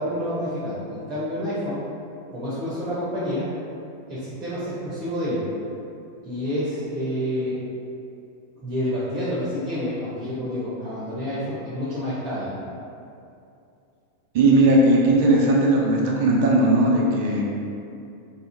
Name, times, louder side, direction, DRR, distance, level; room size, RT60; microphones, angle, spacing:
voice 1, 0.0-1.8 2.3-3.5 4.1-5.4 6.2-7.6 8.6-12.5, equal, 30° right, -9 dB, 0.8 m, -28 dB
voice 2, 14.3-17.4, right 1 dB, 50° right, -2 dB, 0.5 m, -18 dB
2.7 x 2.4 x 2.7 m, 2.6 s
figure-of-eight pair, 90°, 0 cm